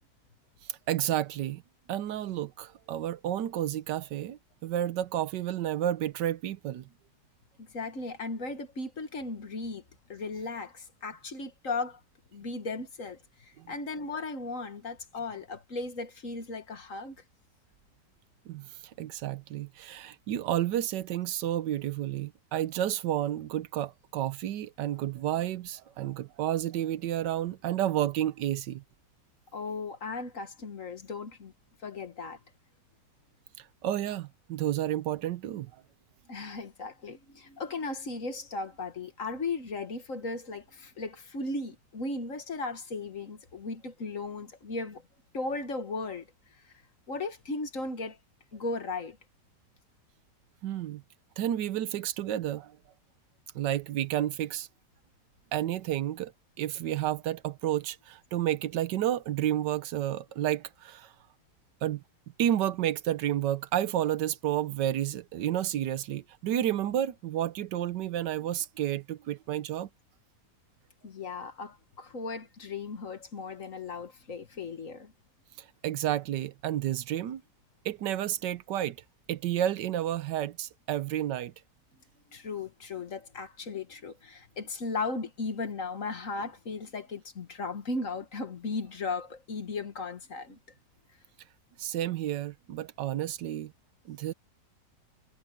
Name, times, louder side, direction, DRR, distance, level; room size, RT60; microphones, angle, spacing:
voice 1, 0.9-1.6 1.9-6.9 13.6-13.7 18.5-28.8 33.6-35.7 50.6-51.0 51.4-52.8 53.5-54.7 55.5-56.3 56.6-61.1 61.8-62.0 62.4-69.9 75.6-77.4 77.8-79.0 79.3-81.5 91.8-93.7 94.0-94.3, right 12 dB, 85° right, 1.5 m, -31 dB
voice 2, 7.6-9.8 10.1-12.0 12.3-17.2 29.5-31.5 31.8-32.4 36.3-45.0 45.3-46.3 47.1-48.2 48.5-49.2 71.0-75.1 82.3-90.6, left 3 dB, 50° left, 2.0 m, -36 dB
omnidirectional pair, 1.8 m